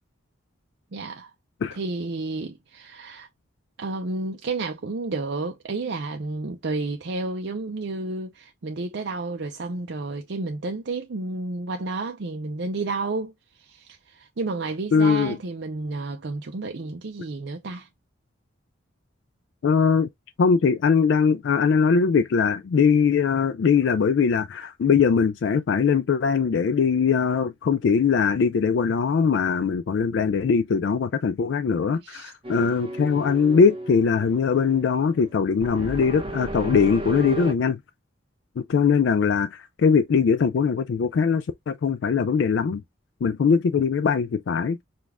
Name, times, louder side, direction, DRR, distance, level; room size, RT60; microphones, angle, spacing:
voice 1, 0.9-1.3 1.7-3.3 3.8-13.3 13.6-17.9 32.0-32.3, right 3 dB, 65° right, 0.5 m, -31 dB
voice 2, 14.9-15.4 19.6-20.1 20.4-37.8 38.6-42.8 43.2-44.8, left 6 dB, 70° left, 0.3 m, -21 dB
sound 1, 32.4-37.5, right 1 dB, 30° right, 0.7 m, -34 dB
5.1 x 2.4 x 3.5 m
head